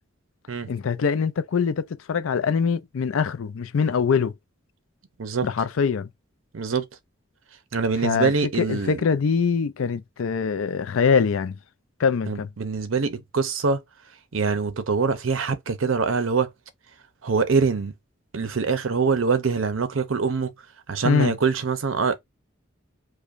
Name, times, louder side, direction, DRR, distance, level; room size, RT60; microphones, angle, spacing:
voice 1, 0.7-4.3 5.4-6.1 8.0-8.3 8.6-11.6 12.0-12.5 21.0-21.3, left 6 dB, 85° left, 0.4 m, -23 dB
voice 2, 6.5-6.8 7.7-9.0 12.3-13.8 14.3-16.5 17.2-17.9 18.3-20.5 20.9-22.2, right 5 dB, 75° right, 0.7 m, -24 dB
5.0 x 2.2 x 2.5 m
head